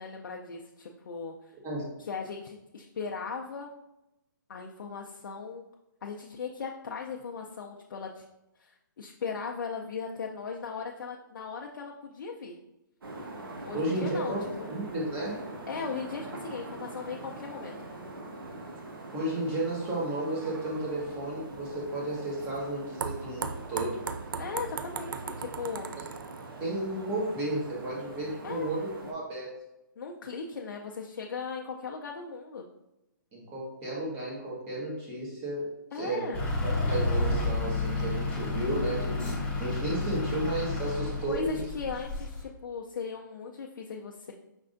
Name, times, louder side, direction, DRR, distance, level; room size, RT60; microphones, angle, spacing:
voice 1, 0.0-1.5 2.0-3.7 4.5-5.6 6.0-8.2 8.6-12.6 13.7-14.7 15.7-17.9 24.4-25.9 28.4-28.7 30.0-32.7 35.9-36.4 41.2-44.3, left 5 dB, 65° left, 0 dB, 0.5 m, -38 dB
sound 1, 13.0-29.1, right 2 dB, 90° right, 1.1 m, -43 dB
voice 2, 13.7-14.4 14.7-15.4 19.1-24.0 26.6-29.5 33.3-41.6, right 1 dB, 20° right, -4 dB, 1.3 m, -33 dB
sound 2, 20.8-26.8, right 6 dB, 70° right, 0.4 m, -39 dB
Truck / Idling, 36.3-42.4, left 2 dB, 10° left, 1.0 m, -30 dB
5.3 x 3.3 x 2.5 m, 0.90 s
hypercardioid pair, 155°, 11 cm